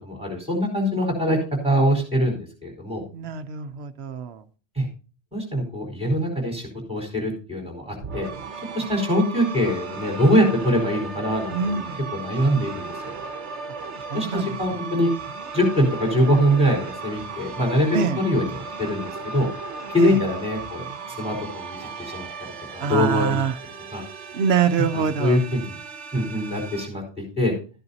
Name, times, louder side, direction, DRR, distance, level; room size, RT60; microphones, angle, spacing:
voice 1, 0.0-1.4 1.6-3.0 4.7-4.9 5.3-8.3 8.7-11.9 12.1-13.1 14.1-15.1 15.5-19.5 19.9-20.9 21.2-23.4 23.9-24.0 24.9-25.8 26.1-27.5, equal, 5° right, 1 dB, 4.4 m, -23 dB
voice 2, 3.1-4.4 11.5-12.0 14.1-14.5 17.9-18.2 20.0-20.1 22.8-23.6 24.3-25.4, right 6 dB, 70° right, 10 dB, 1.0 m, -24 dB
sound 1, 8.0-26.9, right 4 dB, 90° right, 1.2 m, -36 dB
13.5 x 11.0 x 2.8 m, 0.36 s
omnidirectional pair, 1.2 m